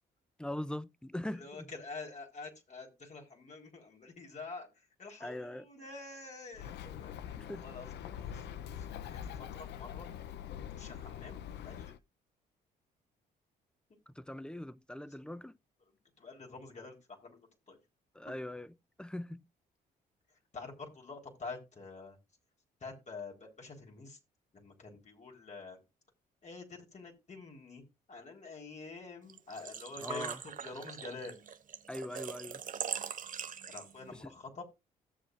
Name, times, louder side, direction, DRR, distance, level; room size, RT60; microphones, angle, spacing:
voice 1, 0.4-1.7 5.2-5.7 7.4-7.7 14.1-15.6 18.1-18.7 19.0-19.4 29.6-29.7 30.0-30.4 31.9-32.6 34.1-34.4, left 1 dB, 5° left, 0.7 m, -41 dB
voice 2, 1.3-10.1 10.7-11.9 16.2-17.8 20.5-22.2 22.8-24.2 24.5-25.8 26.4-31.4 33.7-34.7, left 3 dB, 40° left, 4.2 m, -47 dB
Bird, 6.5-12.0, left 9 dB, 70° left, 0.7 m, -44 dB
Engine / Trickle dribble / Fill (with liquid), 29.3-34.1, right 7 dB, 50° right, 1.1 m, -42 dB
16.5 x 7.2 x 2.6 m
supercardioid pair, 65°, 18 cm